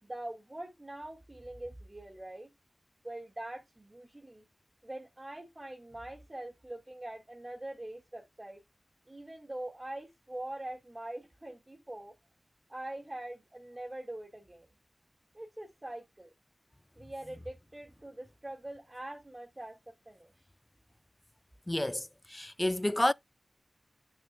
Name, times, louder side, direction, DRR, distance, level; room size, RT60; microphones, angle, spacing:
voice 1, 0.0-2.5 3.0-4.4 4.8-8.6 9.1-12.1 12.7-14.7 15.3-16.3 17.0-20.3, right 1 dB, 30° right, 2.3 m, -43 dB
voice 2, 21.7-23.1, left 1 dB, 20° left, 0.3 m, -30 dB
8.6 x 7.1 x 2.2 m
wide cardioid pair, 55°, 0 cm